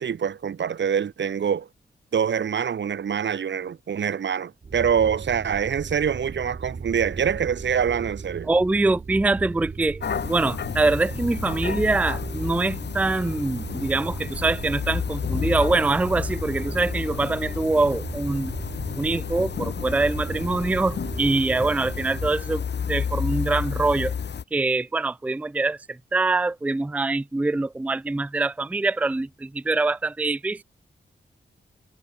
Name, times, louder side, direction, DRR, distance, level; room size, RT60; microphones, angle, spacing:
voice 1, 0.0-1.7 2.1-8.5, right 7 dB, 80° right, 3.4 m, -25 dB
sound 1, 4.6-22.4, right 5 dB, 40° right, 1.2 m, -37 dB
voice 2, 8.5-10.0 10.3-18.5 19.0-22.6 22.9-24.1 24.5-30.6, right 3 dB, 10° right, 0.4 m, -24 dB
sound 2, 10.0-24.4, left 7 dB, 70° left, 2.8 m, -31 dB
wide cardioid pair, 145°, 18 cm